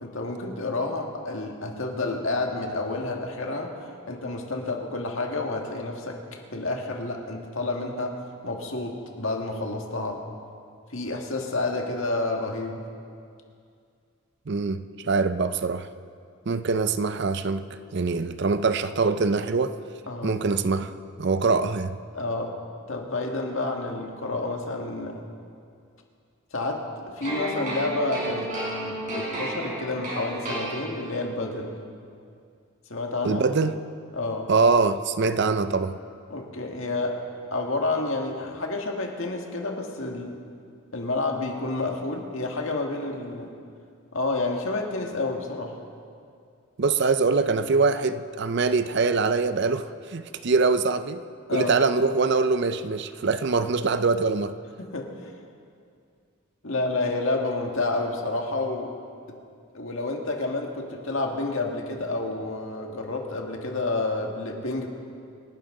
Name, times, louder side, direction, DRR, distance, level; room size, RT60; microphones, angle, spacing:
voice 1, 0.0-3.7 4.1-6.2 6.5-10.2 10.9-12.8 20.1-20.4 22.1-22.6 22.9-25.2 26.5-28.5 28.8-31.7 32.9-33.4 34.1-34.5 36.3-37.2 37.5-40.4 40.9-43.5 44.1-45.8 51.5-51.8 54.8-55.1 56.6-58.9 59.3-59.4 59.7-64.9, left 2 dB, 65° left, 1 dB, 1.9 m, -29 dB
voice 2, 14.5-15.9 16.5-19.8 20.2-20.9 21.2-22.0 33.2-33.8 34.5-36.0 46.8-51.2 51.5-54.5, right 4 dB, 50° right, 12 dB, 0.5 m, -23 dB
sound 1, 27.2-31.3, right 1 dB, 35° right, 4.7 m, -32 dB
27.5 x 11.5 x 3.8 m, 2.3 s
head